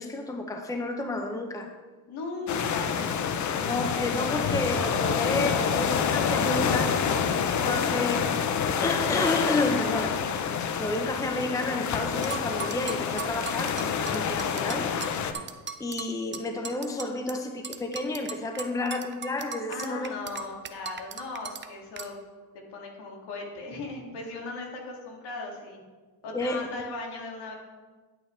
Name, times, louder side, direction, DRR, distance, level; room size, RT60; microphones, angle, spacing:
voice 1, 0.0-1.7 3.6-6.9 7.6-8.3 8.8-10.2 10.8-14.9 15.8-20.1 26.3-26.8, left 2 dB, 10° left, 5 dB, 0.8 m, -30 dB
voice 2, 2.1-3.1 18.5-18.8 19.7-22.1 22.7-25.8 26.2-27.6, left 3 dB, 65° left, 0 dB, 2.4 m, -37 dB
sound 1, 2.5-15.3, left 7 dB, 40° left, 0.8 m, -27 dB
sound 2, 12.2-17.4 17.6-21.6 22.0-22.1, right 6 dB, 25° right, 0.7 m, -38 dB
10.0 x 9.1 x 3.3 m, 1.4 s
supercardioid pair, 100°, 43 cm